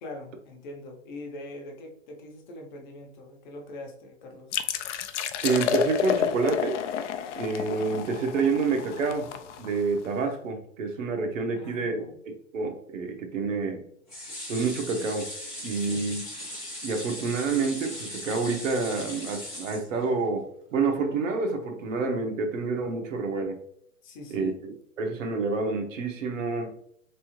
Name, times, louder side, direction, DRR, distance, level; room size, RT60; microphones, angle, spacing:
voice 1, 0.0-4.5 11.5-12.2 15.8-16.2 24.0-24.6, left 2 dB, 35° left, 2 dB, 0.8 m, -42 dB
sound 1, 4.5-10.1, left 9 dB, 65° left, 0.5 m, -30 dB
voice 2, 5.4-6.8 7.4-9.3 9.6-13.8 14.5-15.3 15.6-16.2 16.8-23.6 24.3-24.7 25.0-26.7, right 4 dB, 75° right, 4 dB, 1.0 m, -28 dB
sound 2, 14.1-20.4 20.8-20.9 21.2-21.3, left 1 dB, ahead, 0.3 m, -39 dB
3.4 x 3.3 x 3.0 m, 0.66 s
hypercardioid pair, 155°, 39 cm